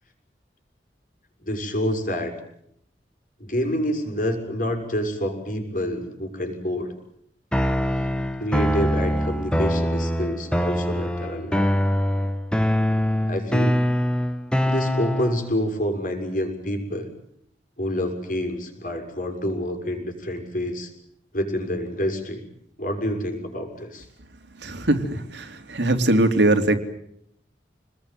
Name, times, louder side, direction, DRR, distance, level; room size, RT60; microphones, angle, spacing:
voice 1, 1.4-2.3 3.4-6.9 8.4-11.7 13.2-13.9 14.6-17.1 17.8-20.9 21.3-22.4 22.8-24.1, equal, 50° left, 4 dB, 6.5 m, -27 dB
sound 1, 7.5-15.5, equal, 5° left, 1.6 m, -23 dB
voice 2, 24.6-26.7, right 1 dB, 80° right, 6 dB, 3.2 m, -21 dB
28.0 x 20.5 x 9.3 m, 0.73 s
head